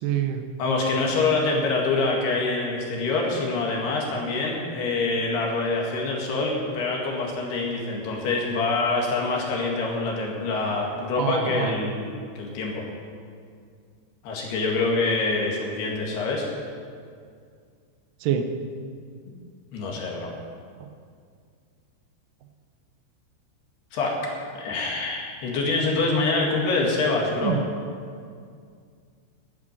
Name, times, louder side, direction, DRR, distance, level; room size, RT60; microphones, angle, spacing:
voice 1, 0.0-0.4 11.2-11.7 18.2-18.5 20.8-20.9 27.4-27.6, right 9 dB, 80° right, 6 dB, 2.4 m, -26 dB
voice 2, 0.6-12.9 14.2-16.5 19.7-20.3 23.9-24.2 24.6-27.6, left 3 dB, 60° left, -1 dB, 3.4 m, -25 dB
11.5 x 8.8 x 8.9 m, 2.2 s
omnidirectional pair, 5.8 m